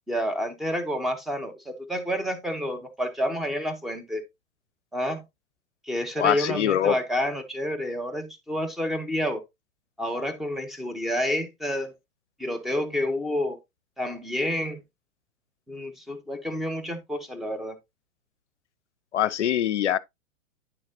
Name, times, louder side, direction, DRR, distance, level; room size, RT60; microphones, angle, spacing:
voice 1, 0.1-4.2 4.9-5.2 5.8-9.4 10.0-11.9 12.4-13.6 14.0-14.8 15.7-17.8, equal, ahead, 0.7 m, -29 dB
voice 2, 6.2-7.0 19.1-20.0, left 10 dB, 60° left, 0.6 m, -23 dB
9.7 x 6.3 x 2.6 m
figure-of-eight pair, 110°, 39 cm